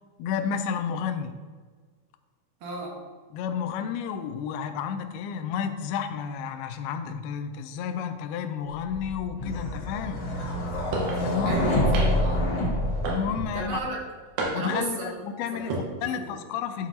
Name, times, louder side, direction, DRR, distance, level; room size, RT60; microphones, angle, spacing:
voice 1, 0.2-1.4 3.3-10.2 11.2-11.7 13.0-13.8 14.5-16.9, left 7 dB, 90° left, 9 dB, 2.5 m, -31 dB
voice 2, 2.6-3.0 11.5-12.5 13.5-14.0 14.6-15.2 15.5-15.8 16.2-16.4, right 2 dB, 65° right, -1 dB, 2.7 m, -33 dB
sound 1, 8.9-13.8, left 1 dB, 50° left, 2.0 m, -27 dB
sound 2, 10.9-11.2 11.9-12.3 13.0-13.5 14.4-14.9 15.5-15.9, right 2 dB, 85° right, 3.2 m, -30 dB
11.0 x 7.4 x 2.8 m, 1.5 s
omnidirectional pair, 4.3 m